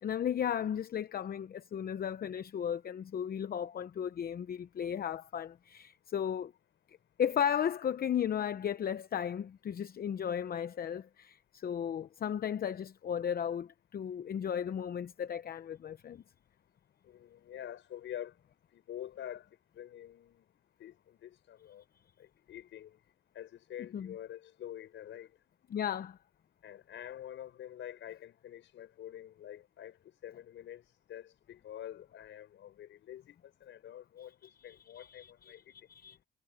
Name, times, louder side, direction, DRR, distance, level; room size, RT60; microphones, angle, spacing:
voice 1, 0.0-6.5 7.2-16.2 23.9-24.1 25.7-26.2 34.7-36.2, left 8 dB, 50° left, 0.8 m, -35 dB
voice 2, 17.0-18.4 18.7-19.5 19.7-20.4 20.8-21.8 22.2-23.0 23.3-25.3 26.6-35.7, left 11 dB, 75° left, 5.0 m, -47 dB
cardioid pair, 90°, 20 cm